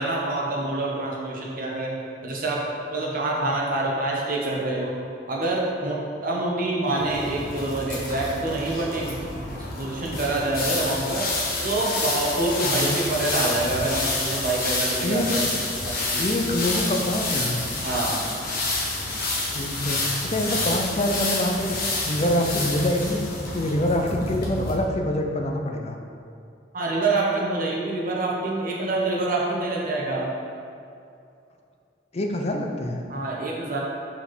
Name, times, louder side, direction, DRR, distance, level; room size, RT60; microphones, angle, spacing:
voice 1, 0.0-2.6 2.9-9.3 9.8-11.2 11.6-15.4 15.8-16.4 17.8-18.2 26.7-30.3 33.1-33.8, right 2 dB, 50° right, -3 dB, 1.2 m, -26 dB
sound 1, 6.9-24.7, left 2 dB, 55° left, 1.4 m, -28 dB
voice 2, 12.6-13.0 15.0-15.3 16.2-17.6 19.5-21.8 22.0-23.2 23.5-26.0 32.1-33.0, left 1 dB, 35° left, 3 dB, 0.6 m, -25 dB
5.6 x 4.4 x 6.1 m, 2.5 s
head